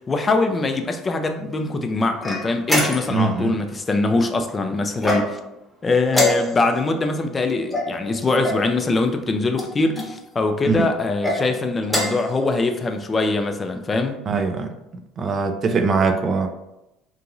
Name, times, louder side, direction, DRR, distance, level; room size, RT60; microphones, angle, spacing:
voice 1, 0.1-5.4 5.8-14.2, left 3 dB, 30° left, 6 dB, 0.4 m, -22 dB
sound 1, 2.2-3.3 5.0-5.6 6.1-6.8 7.7-8.7 9.5-10.1 11.0-11.4 11.8-12.3, left 1 dB, 10° left, 0.9 m, -24 dB
voice 2, 3.1-3.6 10.7-10.9 14.3-14.7 15.2-16.5, right 4 dB, 45° right, 6 dB, 0.4 m, -21 dB
2.9 x 2.6 x 2.5 m, 0.91 s
hypercardioid pair, 60°, 0 cm